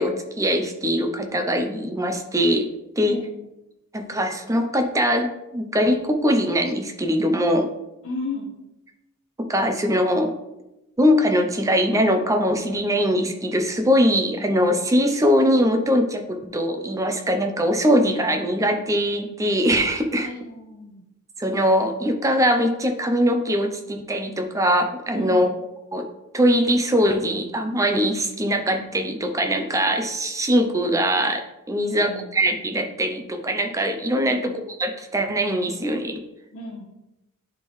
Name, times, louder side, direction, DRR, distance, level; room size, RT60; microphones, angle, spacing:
voice 1, 0.0-2.7 3.0-3.2 3.9-7.7 9.4-10.3 11.0-20.3 21.4-25.5 25.9-26.0 26.3-36.2, equal, 15° right, 5 dB, 0.6 m, -22 dB
voice 2, 8.0-8.5 20.1-21.0 25.1-25.5 31.7-32.4 34.2-34.7 36.5-36.9, left 2 dB, 55° left, -4 dB, 0.9 m, -35 dB
10.5 x 3.7 x 3.2 m, 0.95 s
head